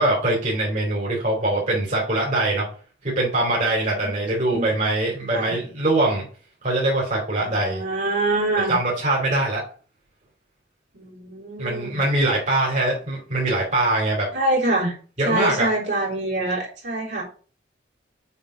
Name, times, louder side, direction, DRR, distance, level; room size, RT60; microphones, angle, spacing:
voice 1, 0.0-2.6 3.0-6.2 6.6-7.8 8.7-9.6 11.6-14.2 15.2-15.7, right 2 dB, 40° right, -4 dB, 2.8 m, -22 dB
voice 2, 4.0-4.7 5.3-5.6 7.4-8.7 10.9-12.0 14.3-14.9 15.2-17.2, right 2 dB, 70° right, -5 dB, 3.4 m, -25 dB
7.1 x 3.8 x 4.9 m, 0.39 s
head